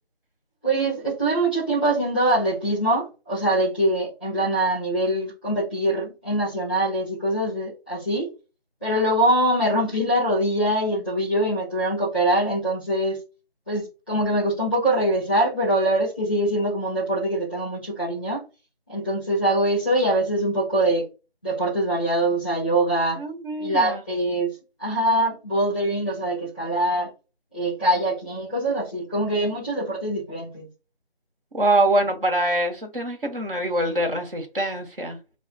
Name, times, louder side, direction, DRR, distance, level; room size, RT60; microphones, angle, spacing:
voice 1, 0.6-8.3 8.8-13.2 13.7-18.4 18.9-21.1 21.4-23.2 23.6-24.5 24.8-27.1 27.5-30.7, right 1 dB, 10° right, 0.9 m, -23 dB
voice 2, 23.2-24.0 31.5-35.2, right 1 dB, 60° right, 1.3 m, -24 dB
5.5 x 2.4 x 2.4 m
figure-of-eight pair, 170°, 31 cm